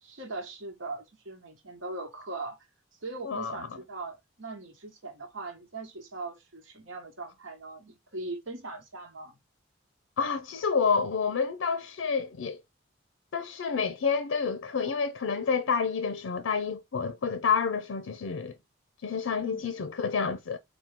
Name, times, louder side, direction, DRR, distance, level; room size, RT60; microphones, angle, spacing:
voice 1, 0.0-2.6 3.0-9.4 19.4-19.7, right 3 dB, 85° right, 1.2 m, -40 dB
voice 2, 10.2-12.6 13.3-18.6 19.0-20.6, left 5 dB, 90° left, 0.5 m, -29 dB
4.4 x 2.3 x 3.5 m
head